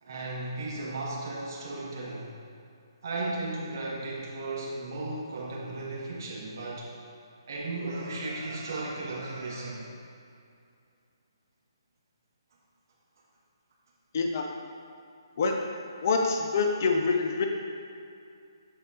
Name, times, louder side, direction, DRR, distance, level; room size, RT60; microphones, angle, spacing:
voice 1, 0.0-2.3 3.0-6.9 7.5-9.8, right 2 dB, 50° right, -4 dB, 1.8 m, -35 dB
voice 2, 14.1-14.5 15.4-15.6 16.0-17.5, left 4 dB, 40° left, 3 dB, 0.7 m, -25 dB
14.0 x 4.9 x 2.8 m, 2.5 s
figure-of-eight pair, 135°, 2 cm